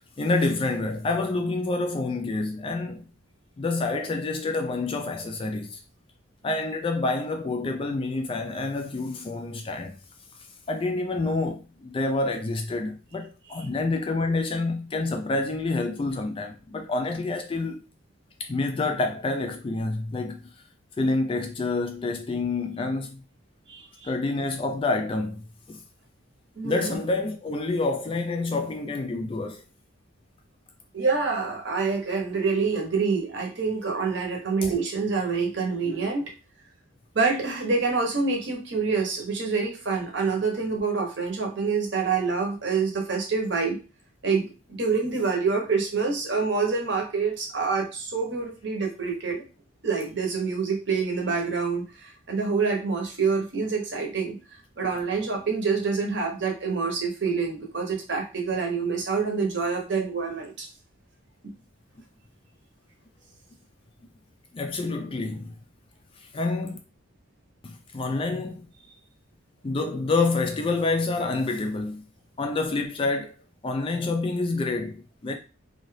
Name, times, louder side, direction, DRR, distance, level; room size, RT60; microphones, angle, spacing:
voice 1, 0.0-3.0 3.6-5.8 6.4-10.0 10.7-17.8 18.4-20.5 21.0-23.2 24.0-25.4 25.7-25.8 26.6-29.6 34.6-34.7 64.5-65.5 66.3-66.8 67.6-68.7 69.6-72.0 72.4-73.3 73.6-75.4, left 3 dB, 25° left, 0.3 m, -28 dB
voice 2, 23.7-24.1 26.6-27.0 30.9-36.2 37.1-43.8 44.2-49.4 49.8-54.4 54.8-60.7 61.4-61.5, right 4 dB, 60° right, 0.8 m, -26 dB
2.6 x 2.3 x 3.2 m
head